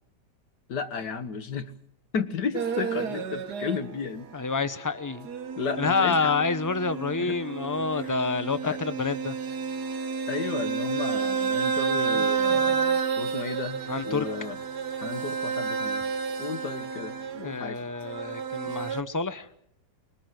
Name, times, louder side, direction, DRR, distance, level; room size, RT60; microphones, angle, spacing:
voice 1, 0.7-1.7 2.1-4.3 5.6-6.3 7.2-7.4 8.6-8.8 10.3-12.8 13.2-13.8 14.1-14.6 14.9-16.0 16.4-17.8, left 5 dB, 75° left, 10 dB, 2.1 m, -33 dB
sound 1, 2.5-4.1 4.5-19.0, right 5 dB, 65° right, 1.8 m, -30 dB
voice 2, 4.3-5.3 5.8-9.4 11.9-13.0 13.9-14.3 17.3-19.5, left 4 dB, 20° left, 13 dB, 0.5 m, -28 dB
22.5 x 19.5 x 7.8 m, 0.70 s
omnidirectional pair, 1.8 m